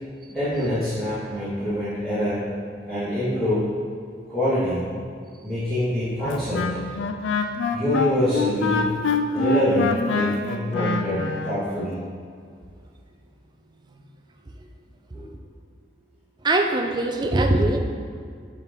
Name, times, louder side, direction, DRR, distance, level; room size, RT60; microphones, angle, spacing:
voice 1, 0.3-2.4 2.9-3.7 4.3-4.9 5.4-6.8 7.7-9.0 9.3-12.0 15.1-15.3, left 1 dB, ahead, -16 dB, 1.5 m, -25 dB
Wind instrument woodwind instrument, 6.2-11.6, left 4 dB, 90° left, 0.4 m, -25 dB
voice 2, 16.4-17.8, right 2 dB, 25° right, 4 dB, 0.4 m, -21 dB
6.9 x 4.2 x 3.6 m, 2.2 s
head